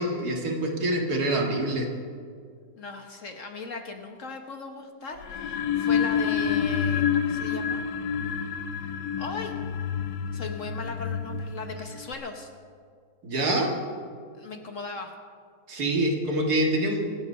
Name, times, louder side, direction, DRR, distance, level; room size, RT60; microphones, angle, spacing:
voice 1, 0.0-1.9 13.2-13.7 15.7-17.2, right 1 dB, 60° right, 1 dB, 2.3 m, -26 dB
voice 2, 2.8-7.8 9.2-9.6 10.3-12.5 14.4-15.1, left 4 dB, 50° left, 4 dB, 1.3 m, -38 dB
sound 1, 5.2-12.1, left 7 dB, 80° left, 1.4 m, -28 dB
25.0 x 8.4 x 5.5 m, 2.1 s
omnidirectional pair, 1.9 m